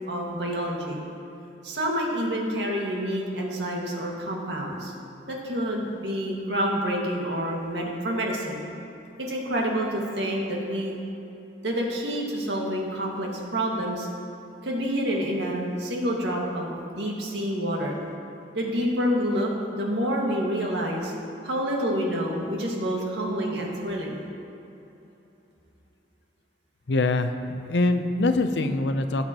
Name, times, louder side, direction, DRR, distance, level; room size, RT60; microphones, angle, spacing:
voice 1, 0.1-1.0 1.6-4.9 5.3-8.6 9.3-11.0 11.6-14.1 14.6-18.0 18.5-21.1 21.4-24.2, equal, 85° right, -1 dB, 1.8 m, -28 dB
voice 2, 26.9-27.3 27.6-29.2, left 2 dB, 80° left, 8 dB, 0.6 m, -23 dB
16.5 x 7.8 x 3.0 m, 2.9 s
head